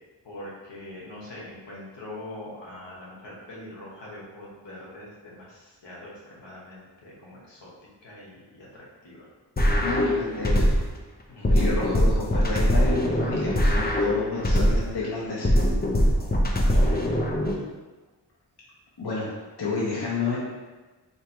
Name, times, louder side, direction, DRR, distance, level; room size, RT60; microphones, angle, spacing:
voice 1, 0.2-6.1 6.4-7.7 8.0-9.2 11.3-12.0 16.1-17.2, left 1 dB, 85° left, -6 dB, 1.2 m, -43 dB
sound 1, 9.6-11.0 11.4-15.0 15.4-17.6, equal, 25° left, 0.5 m, -22 dB
voice 2, 9.7-10.7 11.5-15.5 19.0-19.3 19.6-20.4, left 3 dB, 65° left, -6 dB, 1.0 m, -30 dB
3.2 x 2.8 x 4.5 m, 1.2 s
wide cardioid pair, 75°, 42 cm